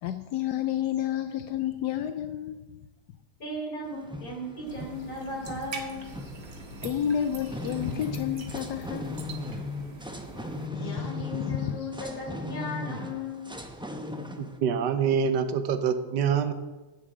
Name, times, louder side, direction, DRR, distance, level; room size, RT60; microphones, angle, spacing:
voice 1, 0.0-2.6 6.8-9.2 10.7-11.9, left 10 dB, 80° left, 10 dB, 1.2 m, -31 dB
voice 2, 3.4-6.0 10.8-13.5, left 1 dB, 55° left, -2 dB, 4.2 m, -36 dB
sound 1, 3.9-14.6, left 2 dB, 5° right, 0.5 m, -38 dB
sound 2, 4.7-10.7, right 3 dB, 60° right, 1.8 m, -44 dB
voice 3, 14.4-16.5, right 7 dB, 85° right, 10 dB, 1.4 m, -26 dB
10.0 x 7.2 x 8.5 m, 1.2 s
omnidirectional pair, 1.8 m